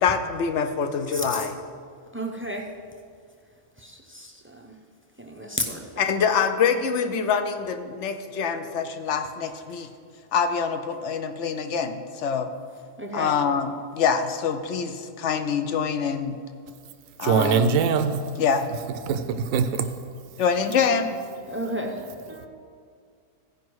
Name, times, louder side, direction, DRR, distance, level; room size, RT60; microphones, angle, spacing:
voice 1, 0.0-1.6 6.0-9.9 10.3-12.5 13.1-16.4 17.2-17.7 18.4-18.7 20.4-21.2, left 6 dB, 60° left, 8 dB, 0.9 m, -25 dB
voice 2, 1.1-1.5 2.1-2.7 3.8-4.8 5.2-6.1 13.0-13.3 21.5-22.5, equal, 15° right, 2 dB, 0.4 m, -33 dB
voice 3, 17.2-18.3 19.1-19.9, right 6 dB, 75° right, 8 dB, 1.0 m, -22 dB
15.5 x 5.2 x 4.7 m, 2.2 s
omnidirectional pair, 1.5 m